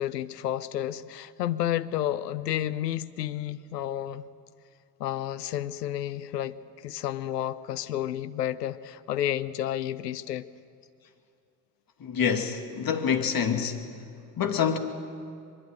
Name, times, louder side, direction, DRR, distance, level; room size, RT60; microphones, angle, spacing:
voice 1, 0.0-4.2 5.0-6.5 6.8-10.4, left 12 dB, 85° left, 0.8 m, -31 dB
voice 2, 12.0-13.8 14.4-14.8, left 7 dB, 45° left, 2.6 m, -26 dB
23.5 x 22.0 x 9.1 m
hypercardioid pair, 50°, 47 cm